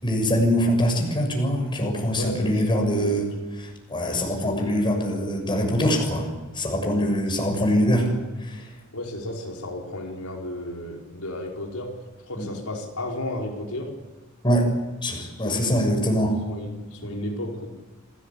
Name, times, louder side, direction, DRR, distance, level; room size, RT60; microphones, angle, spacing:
voice 1, 0.0-3.3 3.6-6.3 6.5-8.1 8.4-8.7 12.4-12.5 14.4-14.7 15.0-16.3, equal, 20° left, 2 dB, 6.6 m, -23 dB
voice 2, 2.2-3.2 4.0-4.9 8.9-11.9 12.2-13.9 15.4-17.7, left 1 dB, 85° left, -1 dB, 4.9 m, -34 dB
27.5 x 19.0 x 8.5 m, 1.2 s
head